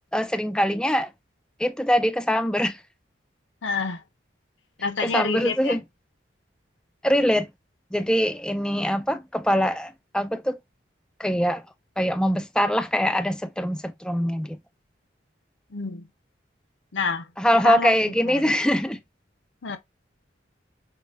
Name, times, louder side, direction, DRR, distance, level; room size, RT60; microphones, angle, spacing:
voice 1, 0.1-1.1 1.6-2.8 5.0-5.8 7.0-7.5 7.9-10.6 11.2-11.6 12.0-14.6 17.4-19.0, equal, 5° left, 0.3 m, -23 dB
voice 2, 3.6-4.0 4.8-5.8 15.7-16.1 16.9-18.5 19.6-19.8, left 4 dB, 85° left, 0.7 m, -29 dB
6.5 x 2.3 x 2.6 m
head